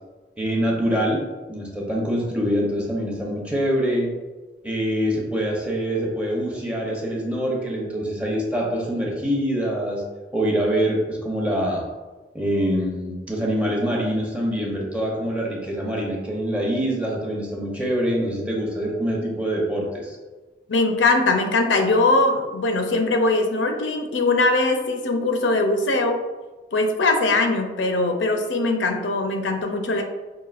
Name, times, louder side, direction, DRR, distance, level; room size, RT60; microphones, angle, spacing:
voice 1, 0.4-4.1 4.6-10.0 10.3-11.9 12.3-20.2, equal, 5° right, -2 dB, 0.7 m, -25 dB
voice 2, 20.7-26.2 26.7-30.0, left 2 dB, 85° left, 4 dB, 0.5 m, -21 dB
5.6 x 2.7 x 2.4 m, 1.2 s
head